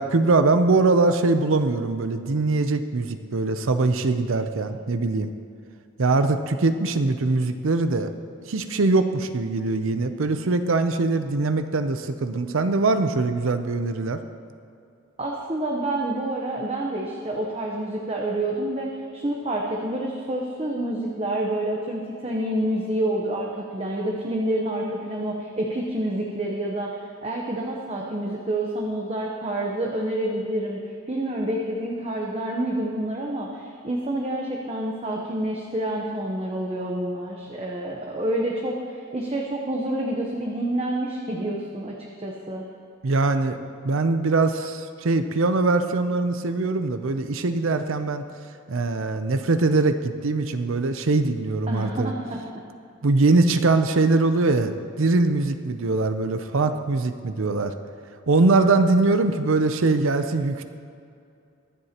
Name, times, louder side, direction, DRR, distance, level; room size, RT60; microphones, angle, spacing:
voice 1, 0.0-5.3 6.0-8.1 8.5-14.2 43.0-43.6 43.8-48.2 48.7-52.1 53.0-57.7 58.3-60.6, right 3 dB, 65° right, 9 dB, 0.6 m, -22 dB
voice 2, 15.2-30.8 31.1-42.6 51.7-52.4, right 1 dB, 25° right, -1 dB, 0.8 m, -28 dB
23.5 x 7.9 x 2.9 m, 2.5 s
head